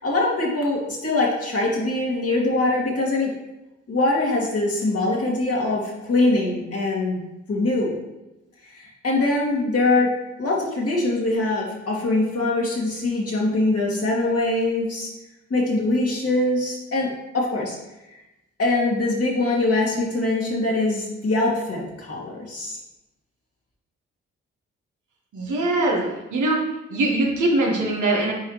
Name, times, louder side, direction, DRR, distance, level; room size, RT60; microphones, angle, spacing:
voice 1, 0.0-3.3 3.9-7.2 7.5-8.0 8.6-10.1 10.4-15.1 15.5-17.1 17.3-17.8 18.6-22.8, left 2 dB, 50° left, -3 dB, 2.3 m, -23 dB
voice 2, 25.3-26.6 26.9-28.3, right 2 dB, 70° right, -1 dB, 1.6 m, -22 dB
8.5 x 4.3 x 3.2 m, 0.98 s
hypercardioid pair, 40°, 31 cm